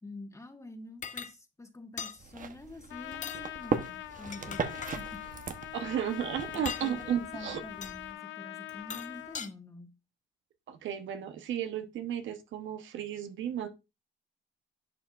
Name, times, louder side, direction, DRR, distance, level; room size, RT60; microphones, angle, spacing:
voice 1, 0.0-5.2 6.5-9.9, left 2 dB, 15° left, 1.5 m, -47 dB
sound 1, 1.0-1.3 2.0-2.2 3.1-3.4 4.1-5.0 6.5-6.9 7.8-8.0 8.7-9.5, left 7 dB, 40° left, 0.6 m, -40 dB
sound 2, 2.2-8.1, right 5 dB, 40° right, 0.9 m, -39 dB
Trumpet, 2.9-9.4, left 13 dB, 85° left, 0.5 m, -43 dB
voice 2, 5.7-7.6 10.7-13.7, right 9 dB, 75° right, 0.9 m, -34 dB
11.0 x 5.9 x 2.4 m
cardioid pair, 90°, 20 cm